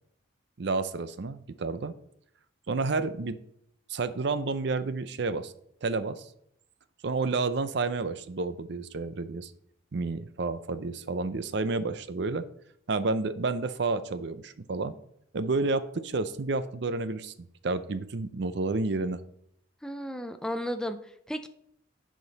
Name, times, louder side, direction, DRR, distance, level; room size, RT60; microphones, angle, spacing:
voice 1, 0.6-1.9 2.7-3.4 3.9-5.5 5.8-6.3 7.0-9.5 9.9-12.4 12.9-14.9 15.3-17.3 17.6-19.2, right 3 dB, 55° right, 13 dB, 0.5 m, -30 dB
voice 2, 19.8-21.5, equal, 5° left, 8 dB, 0.4 m, -34 dB
9.5 x 5.1 x 4.0 m, 0.73 s
head